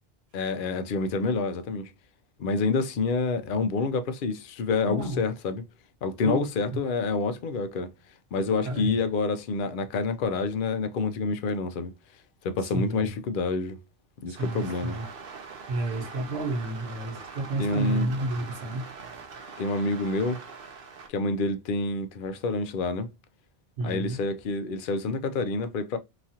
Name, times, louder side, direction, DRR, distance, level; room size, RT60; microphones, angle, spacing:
voice 1, 0.3-1.9 2.4-5.7 6.0-7.9 8.3-11.9 12.4-13.8 14.2-15.0 17.6-18.1 19.6-20.4 21.1-23.1 23.8-26.0, left 3 dB, 65° left, 0.7 m, -28 dB
voice 2, 4.8-5.2 6.2-6.4 8.6-9.0 12.7-13.1 14.3-15.0 15.7-18.8 23.8-24.2, right 2 dB, 80° right, 1.2 m, -30 dB
sound 1, 14.3-21.1, right 5 dB, 65° right, 0.9 m, -43 dB
3.0 x 2.4 x 2.7 m
omnidirectional pair, 1.1 m